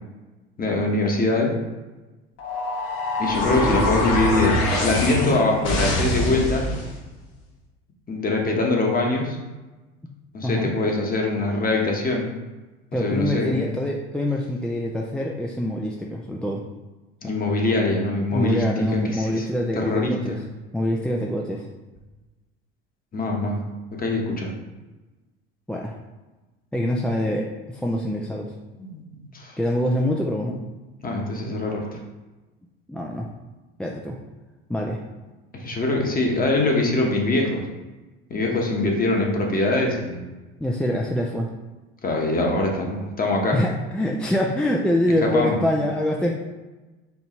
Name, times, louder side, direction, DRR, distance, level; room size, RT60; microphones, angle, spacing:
voice 1, 0.6-1.5 3.2-6.6 8.1-9.4 10.3-12.3 13.0-13.7 17.2-18.6 18.9-19.4 19.7-20.1 23.1-23.6 24.0-24.5 28.8-29.0 29.3-29.5 31.0-31.8 35.5-37.6 38.3-40.2 42.0-43.6 45.2-45.6, left 2 dB, 30° left, 0 dB, 1.2 m, -23 dB
sound 1, 2.4-6.9, left 2 dB, 60° left, 1.4 m, -24 dB
voice 2, 12.9-16.6 18.3-20.4 20.7-21.7 25.7-26.0 26.7-28.5 29.6-30.6 32.9-33.3 33.8-34.2 34.7-35.0 40.6-41.5 43.5-46.3, left 1 dB, 5° left, -1 dB, 0.4 m, -25 dB
4.5 x 2.6 x 4.3 m, 1.2 s
hypercardioid pair, 85°, 30 cm